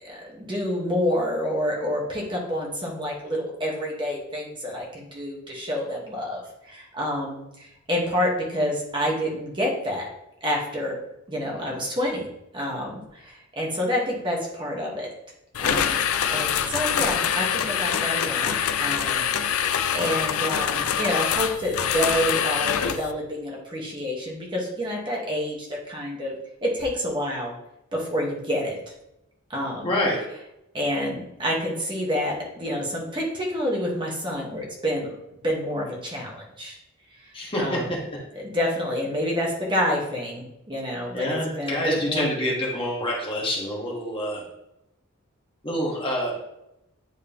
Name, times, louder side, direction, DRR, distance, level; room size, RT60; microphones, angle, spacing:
voice 1, 0.0-6.4 6.7-7.4 7.9-10.0 10.4-11.0 11.3-12.3 12.5-15.1 15.6-26.3 26.6-27.5 27.9-28.8 29.5-29.9 30.7-35.1 35.4-36.8 37.2-37.9 38.3-42.3, equal, 20° right, -2 dB, 1.3 m, -28 dB
sound 1, 15.5-23.1, left 8 dB, 80° left, 0.5 m, -25 dB
voice 2, 29.8-30.2 37.3-38.0 41.1-44.4 45.6-46.4, equal, 25° left, -3 dB, 1.4 m, -27 dB
9.4 x 3.2 x 3.5 m, 0.86 s
head